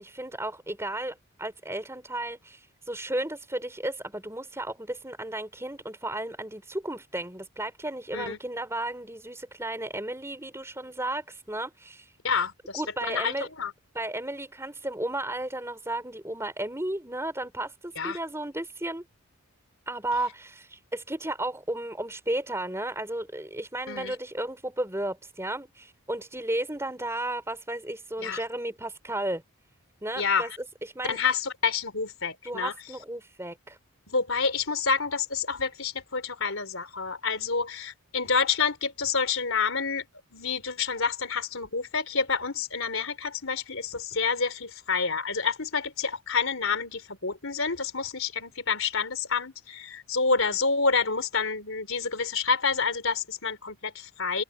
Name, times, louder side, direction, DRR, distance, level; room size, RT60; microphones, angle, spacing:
voice 1, 0.0-12.1 12.7-13.5 13.9-19.0 19.9-29.4 30.0-31.2 32.4-33.8, right 1 dB, 10° right, 4.2 m, -34 dB
voice 2, 12.2-13.3 13.6-13.7 18.0-18.2 23.9-24.1 28.2-28.4 30.2-30.5 31.1-32.7 34.1-40.0 40.3-54.4, left 5 dB, 65° left, 3.8 m, -28 dB
head